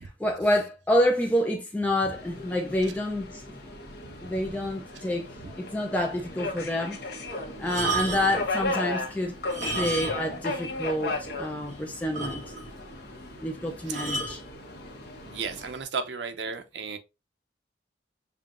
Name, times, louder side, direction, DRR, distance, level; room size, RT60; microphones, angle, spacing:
voice 1, 0.0-3.6 4.2-5.3 5.6-7.0 7.6-9.3 9.6-12.4 13.4-14.4, left 1 dB, 10° left, 0.4 m, -28 dB
Subway metro underground, 2.1-15.7, left 2 dB, 55° left, 0.9 m, -36 dB
sound 1, 7.6-8.5 9.4-10.4 10.7-10.8 11.3-11.4 11.7-11.8 12.1-12.8 13.9-14.4 15.2-15.5, right 3 dB, 40° right, 1.3 m, -32 dB
voice 2, 15.2-17.0, right 5 dB, 70° right, 0.6 m, -34 dB
5.5 x 2.3 x 2.4 m
head